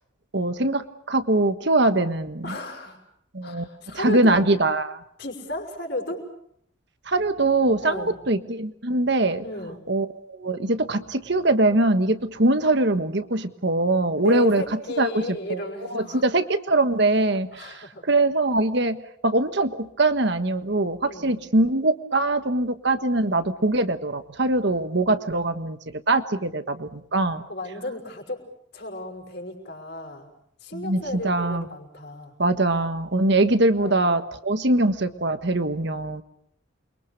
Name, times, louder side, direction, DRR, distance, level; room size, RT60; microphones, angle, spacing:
voice 1, 0.3-2.5 3.3-3.6 3.9-5.0 7.1-9.4 9.9-14.6 15.0-15.6 15.9-25.8 26.1-27.4 30.7-31.6 32.4-36.2, right 2 dB, 55° right, 9 dB, 1.4 m, -22 dB
voice 2, 2.4-3.0 3.4-4.4 5.2-6.3 7.8-8.2 9.4-9.8 14.2-16.3 17.5-18.0 21.0-21.4 27.5-28.4 28.7-30.3 30.6-32.3 33.8-34.0, left 1 dB, 55° left, 2 dB, 5.8 m, -34 dB
29.0 x 23.5 x 6.7 m, 0.69 s
head